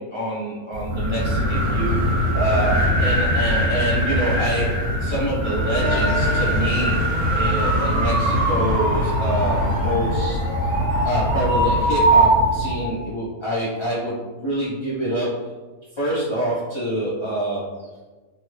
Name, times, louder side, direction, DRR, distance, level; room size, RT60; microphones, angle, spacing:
voice 1, 0.0-4.7 5.0-7.0 7.3-10.4 11.0-15.5 15.9-17.9, right 1 dB, 30° left, -9 dB, 0.5 m, -26 dB
sound 1, 0.7-12.9, right 1 dB, 90° right, 1.3 m, -21 dB
sound 2, 5.6-12.1, left 2 dB, 80° left, 1.3 m, -35 dB
3.1 x 2.5 x 3.0 m, 1.2 s
omnidirectional pair, 1.5 m